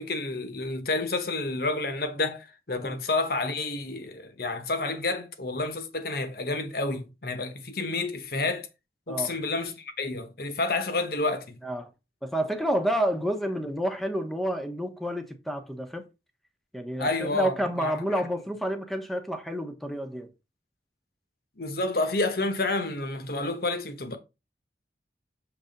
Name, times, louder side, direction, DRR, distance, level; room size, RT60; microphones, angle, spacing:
voice 1, 0.0-8.7 9.1-11.6 17.0-18.2 21.6-24.2, left 2 dB, 55° left, 1.1 m, -29 dB
voice 2, 12.2-16.0 16.7-20.3, equal, ahead, 0.9 m, -29 dB
6.9 x 3.4 x 5.2 m
head